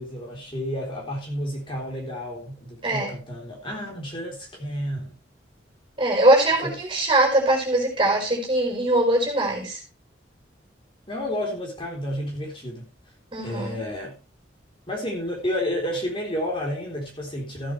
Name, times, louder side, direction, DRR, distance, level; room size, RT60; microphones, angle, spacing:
voice 1, 0.0-5.2 6.6-6.7 11.1-12.8 13.4-14.2 14.9-17.7, equal, 25° left, -1 dB, 3.7 m, -31 dB
voice 2, 6.0-9.8 13.3-13.8, right 1 dB, 25° right, 0 dB, 4.9 m, -21 dB
15.0 x 9.4 x 3.3 m, 0.32 s
head